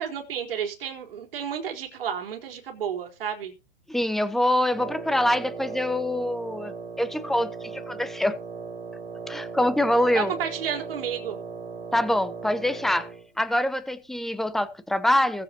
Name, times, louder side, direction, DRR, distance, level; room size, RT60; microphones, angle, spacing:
voice 1, 0.0-3.5 10.1-11.4, right 8 dB, 70° right, 4.2 m, -31 dB
voice 2, 3.9-8.4 9.3-10.3 11.9-13.1 13.4-15.4, left 1 dB, ahead, 0.8 m, -25 dB
Wind instrument woodwind instrument, 4.7-13.3, right 5 dB, 20° right, 4.0 m, -37 dB
21.0 x 7.9 x 3.0 m
hypercardioid pair, 150°, 30 cm